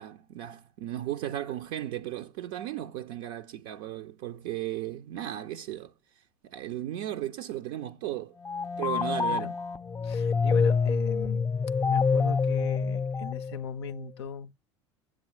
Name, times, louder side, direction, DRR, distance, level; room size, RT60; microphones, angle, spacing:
voice 1, 0.0-5.9 6.4-8.4 8.8-9.5, right 12 dB, 55° right, 0.5 m, -35 dB
sound 1, 8.4-13.9, left 5 dB, 20° left, 0.5 m, -27 dB
voice 2, 10.0-11.5 11.9-14.5, left 5 dB, 70° left, 0.5 m, -39 dB
7.6 x 7.5 x 4.7 m
figure-of-eight pair, 70°, 14 cm